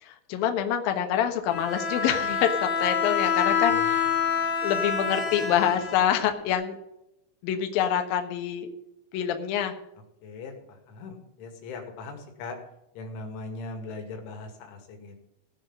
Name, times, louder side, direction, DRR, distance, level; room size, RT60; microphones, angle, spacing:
voice 1, 0.0-4.1 4.6-6.8 7.4-8.7 9.1-9.7, left 9 dB, 65° left, 6 dB, 2.6 m, -26 dB
Bowed string instrument, 1.5-6.5, left 6 dB, 45° left, 1.6 m, -27 dB
voice 2, 3.5-4.1 10.2-12.6 12.9-15.3, left 3 dB, 85° left, 3 dB, 4.7 m, -40 dB
17.0 x 6.0 x 7.4 m, 0.86 s
omnidirectional pair, 5.4 m